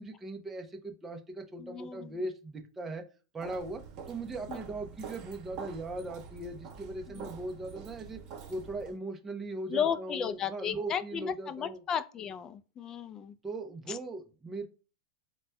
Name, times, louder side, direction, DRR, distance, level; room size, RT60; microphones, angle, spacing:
voice 1, 0.0-3.0 3.3-3.8 4.1-8.2 8.5-11.8 13.4-14.7, right 2 dB, 15° right, 0.7 m, -39 dB
voice 2, 1.6-2.2 4.5-4.6 7.1-7.3 9.7-13.4 13.9-14.0, left 8 dB, 25° left, 0.4 m, -34 dB
Walk footsteps, 3.4-9.0, right 6 dB, 40° right, 1.1 m, -46 dB
4.0 x 2.2 x 2.2 m
hypercardioid pair, 130°, 2 cm